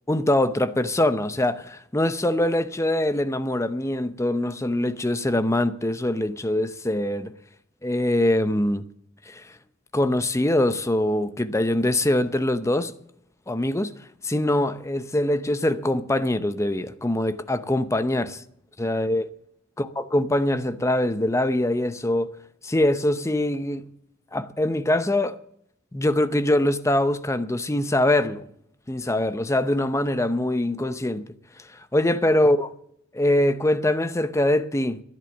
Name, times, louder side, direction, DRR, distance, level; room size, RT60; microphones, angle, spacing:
voice 1, 0.1-7.3 7.8-8.8 9.3-9.4 9.9-12.9 13.5-13.9 14.2-18.4 18.8-19.3 19.8-22.3 22.6-23.8 24.3-25.4 25.9-28.4 28.9-31.3 31.9-32.7 33.1-35.0, left 1 dB, 15° left, 0.7 m, -23 dB
12.5 x 11.0 x 7.1 m
head